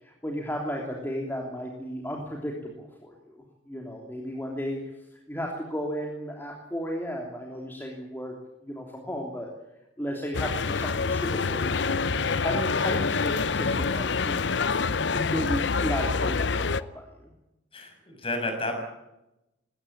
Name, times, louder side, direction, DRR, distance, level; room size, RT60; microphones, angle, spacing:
voice 1, 0.0-4.8 5.1-8.3 8.6-9.5 10.0-12.1 12.4-14.4 15.1-17.3, equal, 10° left, 0 dB, 3.2 m, -34 dB
sound 1, 10.3-16.8, left 4 dB, 65° left, 0.7 m, -26 dB
voice 2, 17.7-18.8, left 2 dB, 30° left, 5 dB, 6.3 m, -32 dB
20.5 x 18.5 x 8.9 m, 0.92 s
head